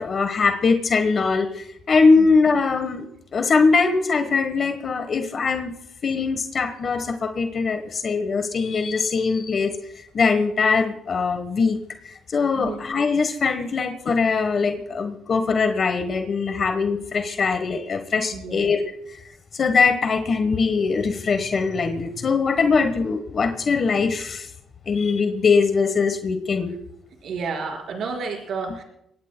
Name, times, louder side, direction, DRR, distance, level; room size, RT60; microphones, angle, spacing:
voice 1, 0.0-3.1 3.3-5.7 6.0-9.8 10.1-11.8 12.3-18.8 19.5-24.5 24.9-26.7, left 4 dB, 50° left, 8 dB, 1.1 m, -21 dB
voice 2, 18.3-18.7 27.2-28.8, right 4 dB, 65° right, 0 dB, 4.8 m, -30 dB
24.0 x 19.5 x 2.2 m, 0.77 s
cardioid pair, 90°, 0 cm